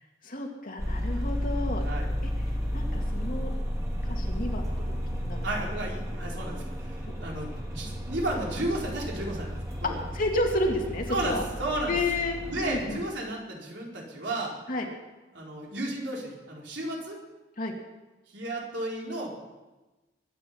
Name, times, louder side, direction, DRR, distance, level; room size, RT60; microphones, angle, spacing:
voice 1, 0.2-1.8 2.2-2.3 2.7-3.5 4.0-5.5 7.1-7.2 9.8-11.4 11.9-12.4 12.6-13.0 14.7-14.9 17.6-17.7, left 2 dB, 45° left, 1 dB, 2.3 m, -31 dB
sound 1, 0.8-12.9, equal, 15° right, 3.0 m, -33 dB
voice 2, 5.4-10.0 11.1-12.0 12.5-14.5 15.3-17.2 18.3-19.3, right 1 dB, 65° right, -2 dB, 4.4 m, -33 dB
22.5 x 9.9 x 5.8 m, 1.1 s
head